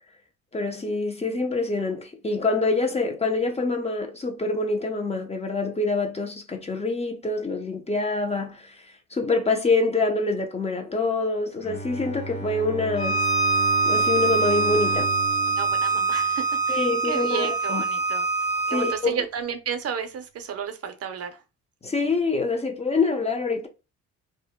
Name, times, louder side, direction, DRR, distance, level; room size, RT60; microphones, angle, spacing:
voice 1, 0.5-8.8 9.1-13.2 13.9-15.1 16.7-17.8 18.7-19.2 21.8-23.7, left 3 dB, 20° left, 0.5 m, -25 dB
Bowed string instrument, 11.6-16.9, equal, 45° left, 1.3 m, -34 dB
Bowed string instrument 2, 13.0-19.0, right 4 dB, 80° left, 0.9 m, -24 dB
voice 2, 15.5-18.3 18.7-21.4, right 7 dB, 55° right, 0.6 m, -32 dB
2.7 x 2.0 x 3.5 m
cardioid pair, 90°, 30 cm